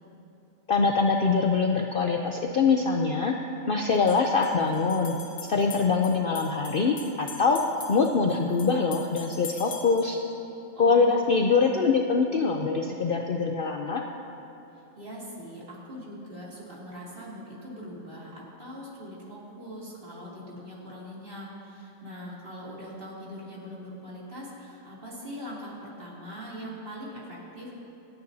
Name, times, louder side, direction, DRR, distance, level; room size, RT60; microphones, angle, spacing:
voice 1, 0.7-3.4 3.7-5.1 5.4-7.6 7.9-10.2 10.8-14.0, left 4 dB, 55° left, 2 dB, 0.7 m, -24 dB
sound 1, 2.3-2.4 3.9-10.2, left 6 dB, 85° left, 1.6 m, -44 dB
voice 2, 10.7-11.6 14.7-27.8, equal, 40° right, -7 dB, 3.1 m, -41 dB
27.5 x 9.5 x 2.7 m, 2.8 s
omnidirectional pair, 1.4 m